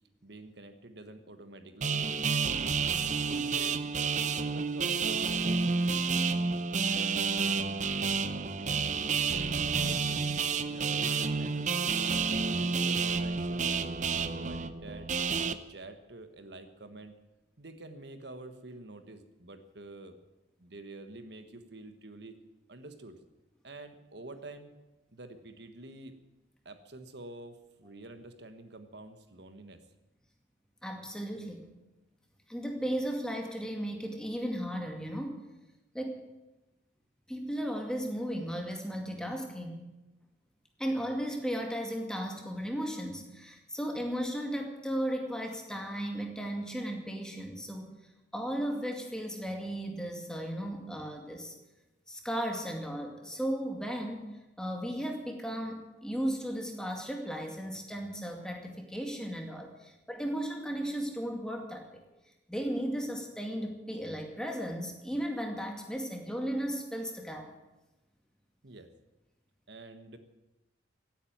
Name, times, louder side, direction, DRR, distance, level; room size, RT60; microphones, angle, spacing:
voice 1, 0.2-2.8 3.2-3.9 4.2-6.3 6.8-7.7 8.3-10.2 10.7-11.7 11.9-13.7 14.1-15.1 15.5-17.1 17.6-20.2 20.6-22.4 22.7-23.2 23.6-24.7 25.1-26.1 26.6-29.8 68.6-68.9 69.7-70.2, right 2 dB, 70° right, 9 dB, 1.3 m, -48 dB
sound 1, 1.8-15.5, right 5 dB, 40° right, 0.7 m, -30 dB
sound 2, 13.1-16.3, equal, 85° right, 3.8 m, -52 dB
voice 2, 30.8-31.7 32.5-35.4 35.9-36.2 37.3-39.9 40.8-47.9 48.3-51.5 52.1-62.0 62.5-67.5, equal, 5° left, 2 dB, 2.2 m, -35 dB
16.5 x 9.3 x 9.3 m, 1.0 s
head